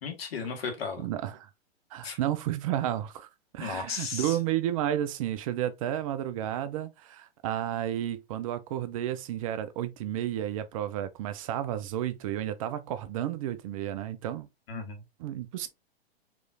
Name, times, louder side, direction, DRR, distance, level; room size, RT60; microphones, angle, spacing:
voice 1, 0.0-1.1 2.0-2.2 3.6-4.4 14.7-15.0, left 5 dB, 70° left, 1.6 m, -35 dB
voice 2, 1.0-1.5 1.9-14.5 15.2-15.7, right 12 dB, 35° right, 0.4 m, -32 dB
4.7 x 3.0 x 2.6 m
hypercardioid pair, 125°, 31 cm